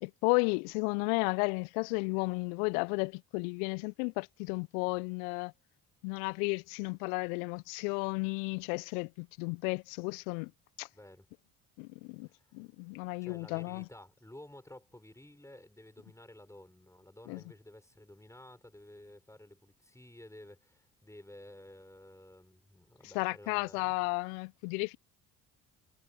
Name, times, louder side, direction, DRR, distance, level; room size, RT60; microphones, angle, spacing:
voice 1, 0.0-5.5 6.0-10.5 10.8-10.9 11.8-13.8 17.3-17.4 23.1-25.0, left 35 dB, 65° left, 1.3 m, -33 dB
voice 2, 10.9-11.3 12.2-12.5 13.2-24.1, left 1 dB, 5° left, 6.9 m, -53 dB
figure-of-eight pair, 50°, 44 cm